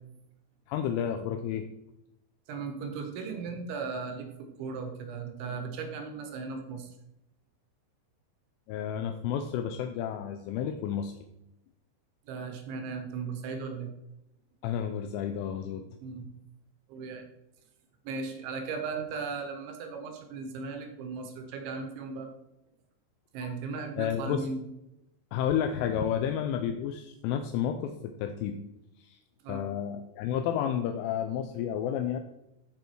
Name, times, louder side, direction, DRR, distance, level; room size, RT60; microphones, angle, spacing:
voice 1, 0.7-1.7 8.7-11.2 14.6-15.9 23.4-23.5 24.0-24.4 25.3-28.6 29.0-29.2 29.5-32.2, left 9 dB, 80° left, 6 dB, 3.0 m, -31 dB
voice 2, 2.5-6.9 12.3-13.9 16.0-16.2 16.9-17.3 18.1-22.3 23.3-24.6 29.4-29.7, right 4 dB, 70° right, 5 dB, 3.4 m, -37 dB
15.0 x 5.5 x 4.6 m, 0.87 s
omnidirectional pair, 5.8 m